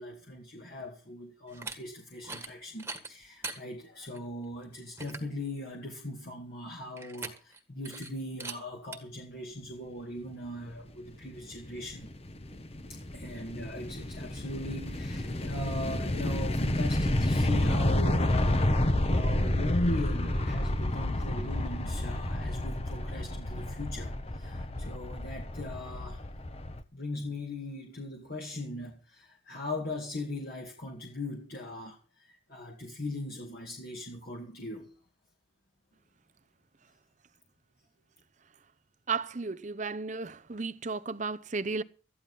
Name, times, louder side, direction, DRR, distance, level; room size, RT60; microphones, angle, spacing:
voice 1, 0.0-12.1 13.1-26.2 26.9-34.9, left 1 dB, 50° left, 2.2 m, -39 dB
sound 1, 1.5-1.8 2.2-2.5 2.8-3.6 4.1-4.2 4.6-4.7 5.0-5.3 7.0-7.6 7.8-8.1 8.4-8.6 8.9-9.0, right 3 dB, 10° right, 1.7 m, -40 dB
sound 2, 11.3-26.8, left 1 dB, 30° left, 1.0 m, -30 dB
voice 2, 39.1-41.8, right 4 dB, 40° right, 0.7 m, -34 dB
14.0 x 11.0 x 5.5 m
head